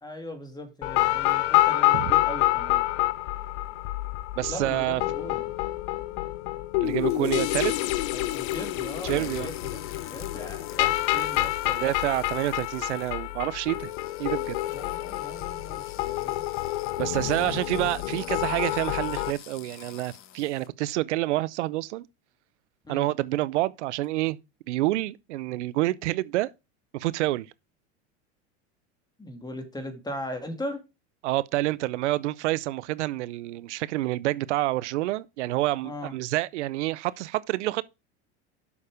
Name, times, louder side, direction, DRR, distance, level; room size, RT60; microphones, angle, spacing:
voice 1, 0.0-2.8 4.5-5.5 7.1-7.4 8.1-11.9 14.6-16.4 22.8-23.1 29.2-30.8 35.8-36.1, left 1 dB, 10° left, 2.5 m, -39 dB
sound 1, 0.8-19.3, left 16 dB, 75° left, 0.7 m, -28 dB
voice 2, 4.4-5.0 6.8-7.8 9.0-9.5 11.7-13.9 14.2-14.6 17.0-22.1 22.9-24.4 24.7-26.5 26.9-27.5 31.2-37.8, right 17 dB, 85° right, 0.6 m, -28 dB
sound 2, 6.8-20.7, left 12 dB, 40° left, 0.9 m, -46 dB
7.2 x 6.6 x 4.9 m
supercardioid pair, 105°, 34 cm